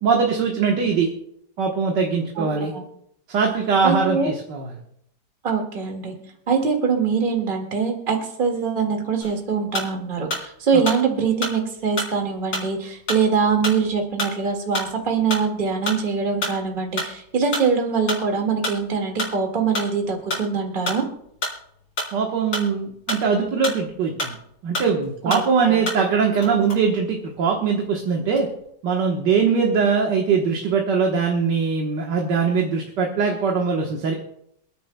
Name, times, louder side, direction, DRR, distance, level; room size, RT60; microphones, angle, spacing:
voice 1, 0.0-1.1 1.6-2.7 3.3-4.8 10.7-10.8 22.1-24.4 24.6-28.5 28.8-34.1, right 5 dB, 75° right, 1 dB, 1.9 m, -21 dB
voice 2, 2.4-2.8 3.8-4.3 5.4-6.1 6.5-21.1 25.3-25.9, right 5 dB, 30° right, 1 dB, 2.0 m, -23 dB
sound 1, 9.2-10.5 10.9-24.5 24.8-26.2 26.4-27.7 28.1-28.7, left 1 dB, 85° left, 4.8 m, -30 dB
27.5 x 10.0 x 2.2 m, 0.73 s
omnidirectional pair, 1.9 m